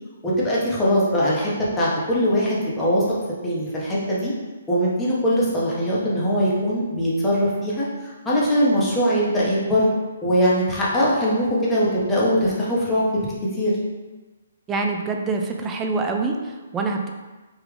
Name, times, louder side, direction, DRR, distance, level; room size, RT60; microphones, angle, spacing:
voice 1, 0.2-3.0 3.4-4.3 4.7-9.9 10.2-13.0 13.5-13.7, equal, 10° left, -7 dB, 0.9 m, -21 dB
voice 2, 14.7-17.1, right 3 dB, 15° right, 2 dB, 0.3 m, -25 dB
3.5 x 2.4 x 3.2 m, 1.2 s
hypercardioid pair, 145°, 0 cm